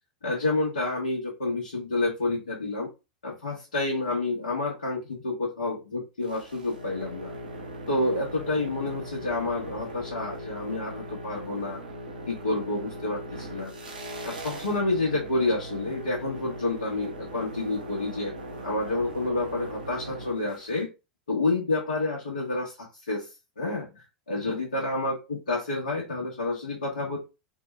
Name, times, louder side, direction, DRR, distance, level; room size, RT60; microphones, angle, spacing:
voice 1, 0.2-2.9 3.2-7.3 7.9-11.8 12.3-13.7 14.2-18.3 18.6-20.9 21.3-23.3 23.6-27.2, left 2 dB, 80° left, -3 dB, 1.4 m, -29 dB
sound 1, 6.2-20.8, right 1 dB, 90° right, 1.3 m, -39 dB
4.3 x 2.5 x 3.3 m, 0.27 s
hypercardioid pair, 90°, 4 cm